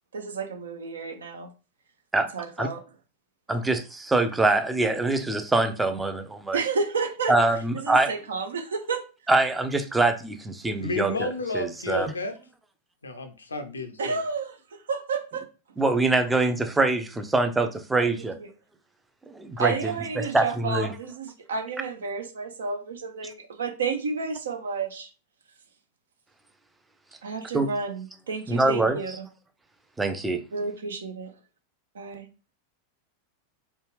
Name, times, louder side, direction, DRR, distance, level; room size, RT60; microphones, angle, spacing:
voice 1, 0.1-1.5 2.3-2.8 6.5-7.4 7.7-9.0 14.0-15.5 18.0-18.5 19.6-25.1 27.2-29.3 30.5-31.3 31.9-32.3, right 4 dB, 65° right, 0.5 m, -31 dB
voice 2, 3.5-6.6 7.3-8.1 9.3-12.1 15.8-18.4 19.3-19.7 20.2-20.9 27.5-27.7 28.5-29.0 30.0-30.4, right 2 dB, 10° right, 0.4 m, -24 dB
voice 3, 10.8-12.3 13.0-14.2, left 2 dB, 75° left, 0.5 m, -31 dB
3.2 x 2.3 x 3.2 m
figure-of-eight pair, 90°, 0 cm